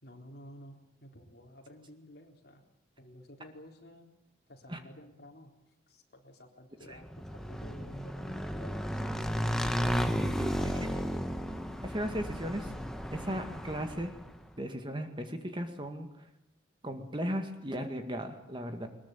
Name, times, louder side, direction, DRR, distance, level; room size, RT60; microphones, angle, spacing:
voice 1, 0.0-2.6 3.0-4.1 4.5-5.5 5.9-9.5 10.5-11.3, left 1 dB, 50° left, 2 dB, 3.9 m, -53 dB
Motorcycle / Engine, 7.0-14.3, equal, ahead, 1.2 m, -34 dB
voice 2, 10.2-10.9 11.8-12.7 13.1-14.1 14.6-16.3 16.8-18.9, equal, 25° right, 6 dB, 2.1 m, -36 dB
22.0 x 21.5 x 9.2 m, 0.81 s
head